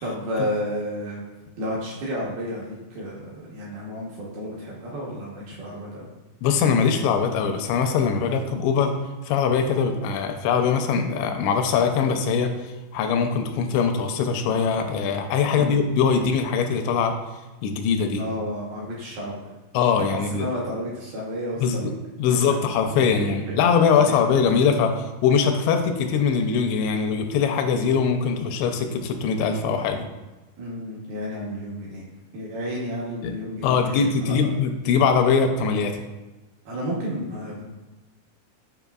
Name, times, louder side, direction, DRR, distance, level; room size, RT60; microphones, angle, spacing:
voice 1, 0.0-1.2 1.6-6.1 15.5-15.8 18.1-19.3 20.3-21.9 23.1-23.3 24.0-24.2 30.6-32.0 32.3-34.5 36.7-37.6, equal, 70° right, -5 dB, 2.5 m, -31 dB
voice 2, 6.4-8.9 9.3-17.1 17.6-18.2 19.7-20.5 21.6-21.9 22.2-30.1 33.2-33.3 33.6-35.9, left 6 dB, 85° left, 6 dB, 2.7 m, -22 dB
8.0 x 5.2 x 2.3 m, 1.1 s
omnidirectional pair, 5.2 m